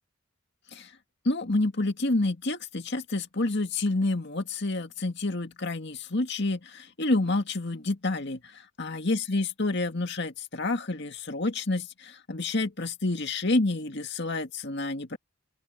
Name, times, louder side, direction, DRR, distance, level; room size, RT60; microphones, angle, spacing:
voice 1, 1.3-8.4 8.8-15.2, left 2 dB, 55° left, 2.0 m, -28 dB
open air
head